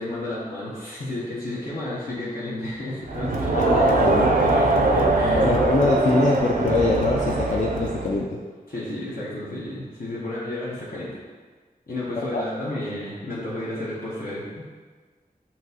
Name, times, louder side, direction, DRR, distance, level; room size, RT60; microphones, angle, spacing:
voice 1, 0.0-4.1 4.4-5.5 8.7-11.2 11.9-14.6, left 1 dB, 70° left, -8 dB, 0.9 m, -32 dB
Crowd, 3.1-8.3, right 2 dB, 65° right, 0.4 m, -22 dB
voice 2, 3.5-4.4 4.9-5.1 5.4-8.4 12.3-12.4, left 2 dB, 50° left, -2 dB, 0.4 m, -23 dB
5.9 x 2.7 x 2.8 m, 1.4 s
wide cardioid pair, 65°, 16 cm